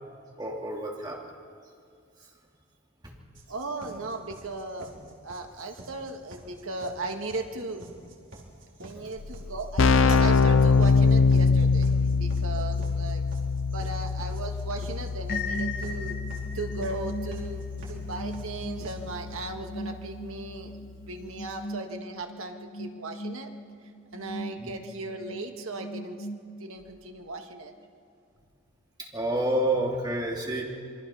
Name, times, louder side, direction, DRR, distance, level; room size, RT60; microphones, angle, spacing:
voice 1, 0.4-1.2 3.0-3.1 24.6-24.7 29.0-30.6, right 1 dB, 20° right, -2 dB, 2.9 m, -29 dB
sound 1, 3.3-19.3, right 2 dB, 60° right, 4.0 m, -47 dB
voice 2, 3.5-7.8 8.8-13.2 13.7-16.2 16.5-23.5 24.1-26.3 26.6-27.7, right 2 dB, 75° right, 4 dB, 1.9 m, -37 dB
Keyboard (musical), 9.2-9.3 9.5-20.1, left 4 dB, 60° left, 0.5 m, -24 dB
sound 2, 15.3-26.9, left 1 dB, 45° left, 1.2 m, -38 dB
27.0 x 22.0 x 5.7 m, 2.3 s
head